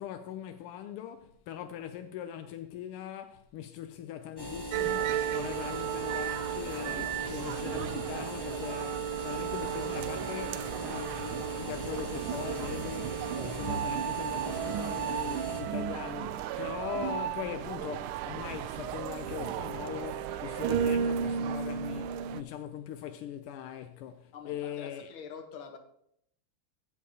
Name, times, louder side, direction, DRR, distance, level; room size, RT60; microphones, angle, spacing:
voice 1, 0.0-25.1, left 10 dB, 90° left, 1.6 m, -41 dB
sound 1, 4.4-15.6, right 1 dB, 10° left, 1.5 m, -40 dB
sound 2, 4.7-22.4, right 9 dB, 80° right, 1.4 m, -34 dB
voice 2, 24.3-25.8, left 6 dB, 70° left, 2.0 m, -45 dB
15.0 x 6.7 x 2.8 m
omnidirectional pair, 2.4 m